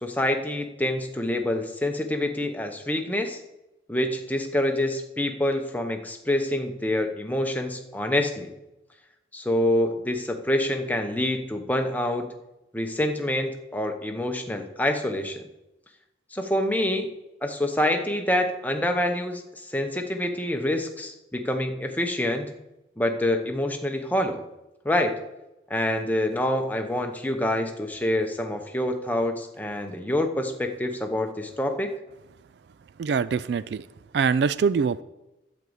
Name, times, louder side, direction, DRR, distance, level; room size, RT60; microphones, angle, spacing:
voice 1, 0.0-3.4 3.9-8.5 9.3-12.3 12.7-15.4 16.3-17.1 17.4-22.5 23.0-24.4 24.8-25.2 25.7-31.9, left 1 dB, 10° left, 4 dB, 0.9 m, -26 dB
voice 2, 33.0-33.8 34.1-35.0, right 6 dB, 65° right, 17 dB, 0.3 m, -23 dB
11.0 x 5.2 x 7.9 m, 0.96 s
head